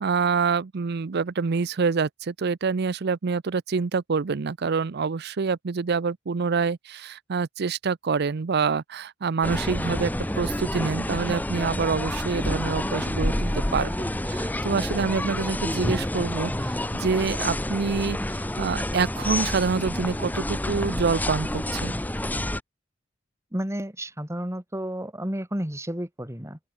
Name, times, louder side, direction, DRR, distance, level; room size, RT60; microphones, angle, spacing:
voice 1, 0.0-21.9, right 5 dB, 60° right, 0.5 m, -26 dB
sound 1, 9.4-22.6, left 1 dB, 10° left, 1.2 m, -28 dB
voice 2, 23.5-26.6, equal, 15° right, 3.4 m, -31 dB
open air
head